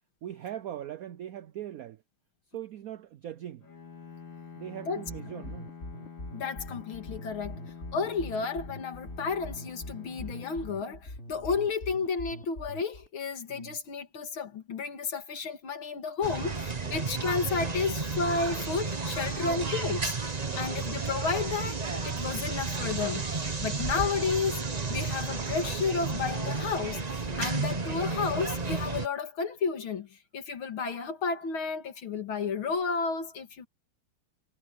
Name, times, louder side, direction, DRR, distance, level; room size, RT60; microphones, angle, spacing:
voice 1, 0.2-2.0 2.5-3.6 4.6-5.7 10.1-10.4 13.5-13.8 16.4-17.0 19.3-19.7 20.4-20.7 22.1-22.3 23.6-23.9 27.6-27.9, right 11 dB, 80° right, 0.7 m, -41 dB
Bowed string instrument, 3.6-11.6, left 6 dB, 70° left, 4.7 m, -47 dB
sound 1, 5.1-13.1, left 1 dB, 35° left, 3.8 m, -42 dB
voice 2, 6.3-7.6 7.9-20.1 20.6-23.3 23.6-33.7, left 5 dB, 90° left, 2.9 m, -32 dB
sound 2, 16.2-29.1, right 4 dB, 25° right, 1.1 m, -32 dB
omnidirectional pair, 2.2 m